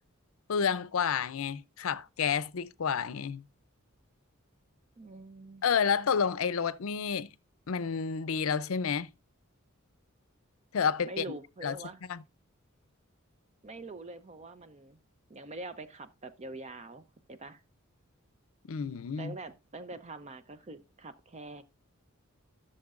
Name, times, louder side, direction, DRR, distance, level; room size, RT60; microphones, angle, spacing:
voice 1, 0.5-3.4 5.6-7.3 7.7-9.1 10.7-11.8 12.1-12.2 18.7-19.3, left 6 dB, 75° left, 0.5 m, -30 dB
voice 2, 5.0-5.6 11.0-12.0 13.6-15.0 15.3-17.6 19.2-21.6, right 2 dB, 30° right, 0.5 m, -44 dB
14.5 x 6.5 x 2.4 m
head